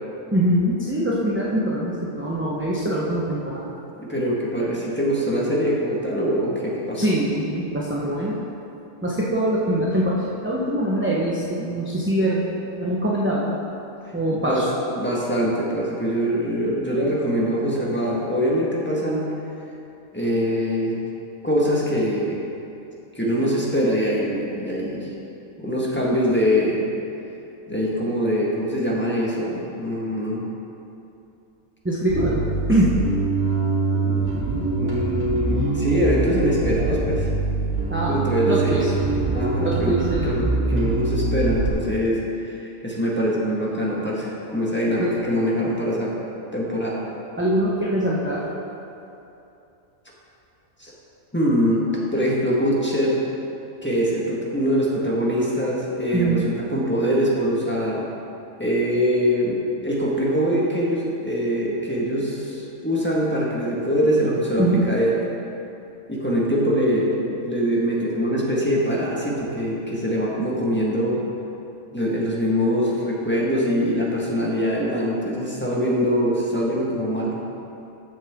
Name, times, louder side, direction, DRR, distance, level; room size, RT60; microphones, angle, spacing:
voice 1, 0.3-3.7 7.0-8.4 9.0-13.6 14.1-14.6 31.8-32.4 32.7-32.9 37.9-38.9 39.6-40.5 45.0-45.1 47.4-48.4 56.1-56.5 64.6-64.8, right 1 dB, 10° right, -6 dB, 0.9 m, -23 dB
voice 2, 4.0-7.0 14.3-14.6 14.9-19.3 20.1-21.0 21.4-22.4 23.1-25.1 25.6-26.8 27.7-30.4 33.7-37.3 38.1-38.9 39.3-40.0 40.3-46.1 46.5-47.0 50.8-50.9 51.3-53.3 53.8-58.1 58.6-65.2 66.1-71.2 71.9-77.4, equal, 10° left, -5 dB, 1.5 m, -23 dB
Bass guitar, 32.1-41.7, right 3 dB, 85° right, 2.5 m, -24 dB
13.5 x 7.5 x 3.7 m, 2.8 s
omnidirectional pair, 1.4 m